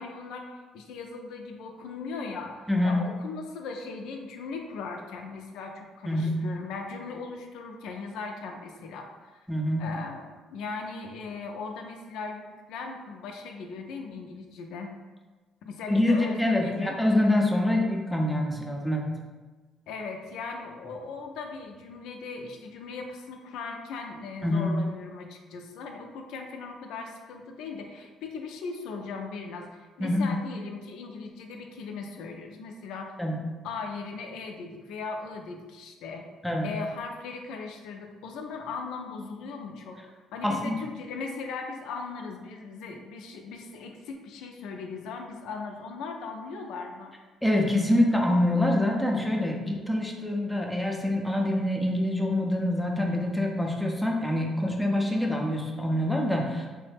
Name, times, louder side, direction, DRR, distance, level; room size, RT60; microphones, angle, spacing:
voice 1, 0.0-9.5 9.8-10.3 10.5-14.9 15.6-17.0 19.9-33.2 33.6-36.3 36.6-40.0 40.3-47.1, left 4 dB, 85° left, 3 dB, 0.4 m, -38 dB
voice 2, 2.7-3.0 6.0-6.4 9.5-9.9 15.9-19.1 24.4-24.7 30.0-30.3 33.2-33.4 36.4-36.7 40.4-40.7 47.4-56.7, left 1 dB, ahead, 0 dB, 0.4 m, -25 dB
3.1 x 2.1 x 3.3 m, 1.3 s
cardioid pair, 115°, 0 cm